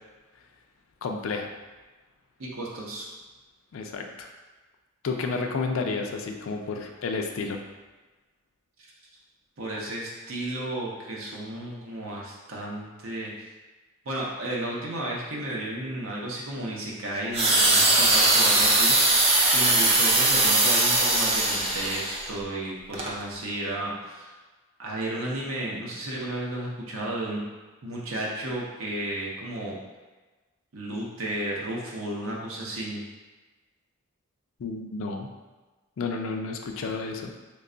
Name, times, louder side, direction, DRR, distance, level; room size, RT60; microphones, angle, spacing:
voice 1, 1.0-1.5 3.7-4.3 5.0-7.6 34.6-35.3 36.0-37.3, left 4 dB, 65° left, 3 dB, 0.4 m, -31 dB
voice 2, 2.4-3.1 8.8-8.9 9.6-13.5 14.0-19.2 19.5-24.3 24.8-27.4 27.8-29.7 30.7-33.0, right 1 dB, 70° right, -3 dB, 0.7 m, -33 dB
sound 1, 17.3-22.3 22.9-23.1, right 2 dB, 25° right, 0.3 m, -21 dB
3.2 x 2.2 x 3.7 m, 1.2 s
head